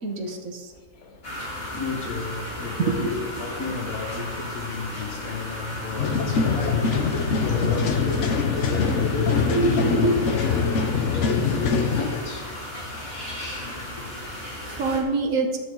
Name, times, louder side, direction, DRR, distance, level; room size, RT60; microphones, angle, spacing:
voice 1, 0.0-0.7 2.8-3.1 8.6-8.7 9.5-10.2 13.1-13.6 14.1-15.6, right 2 dB, 65° right, 1.7 m, -26 dB
voice 2, 0.7-12.6 13.9-14.2, left 3 dB, 80° left, 2.0 m, -33 dB
sound 1, 1.2-15.0, left 1 dB, 40° left, 3.1 m, -35 dB
sound 2, 6.0-12.1, left 5 dB, 55° left, 1.2 m, -23 dB
14.5 x 9.9 x 3.9 m
omnidirectional pair, 1.5 m